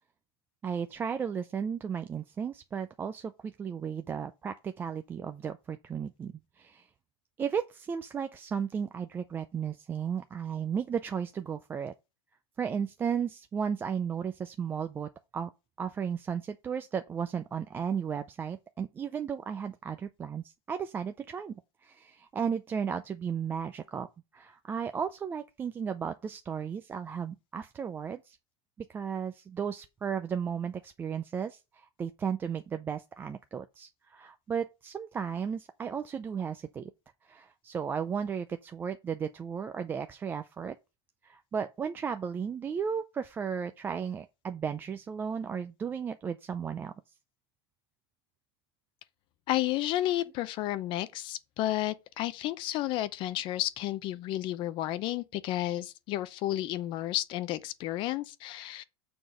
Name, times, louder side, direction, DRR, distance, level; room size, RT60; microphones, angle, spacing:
voice 1, 0.6-6.9 7.4-11.9 12.6-15.5 15.8-21.6 21.8-24.1 24.3-28.4 28.9-36.9 37.2-40.8 41.2-46.9, right 7 dB, 15° right, 0.4 m, -34 dB
voice 2, 49.5-58.8, left 14 dB, 35° left, 0.6 m, -32 dB
6.9 x 3.9 x 6.3 m
supercardioid pair, 150°, 14 cm